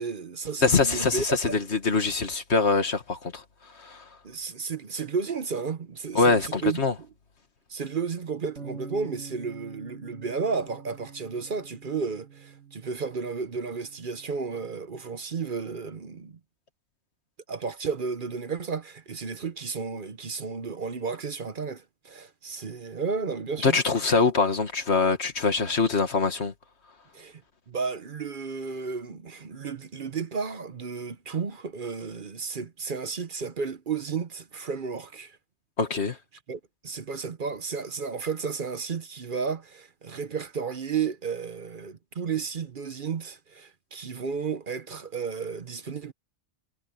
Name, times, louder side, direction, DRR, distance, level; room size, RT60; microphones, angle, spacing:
voice 1, 0.0-1.6 4.2-6.9 7.7-16.4 17.5-23.8 27.1-27.4 27.7-35.4 36.5-46.1, right 5 dB, 50° right, 1.0 m, -33 dB
voice 2, 0.6-3.4 3.8-4.0 6.2-6.9 23.6-26.5 35.8-36.2, left 4 dB, 70° left, 2.1 m, -24 dB
sound 1, 8.6-14.8, right 4 dB, 80° right, 2.1 m, -46 dB
omnidirectional pair, 1.2 m